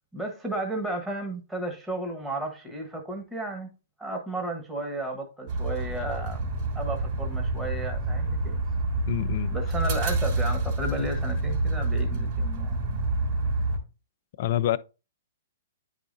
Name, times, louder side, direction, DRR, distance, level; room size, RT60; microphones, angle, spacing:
voice 1, 0.1-3.7 4.0-6.5 6.7-8.6 9.5-12.8, right 1 dB, 10° right, 1.5 m, -33 dB
sound 1, 5.5-13.8, right 2 dB, 40° right, 3.3 m, -28 dB
voice 2, 9.1-9.5 14.4-14.8, left 12 dB, 50° left, 0.5 m, -26 dB
10.0 x 4.9 x 2.7 m
hypercardioid pair, 120°, 0 cm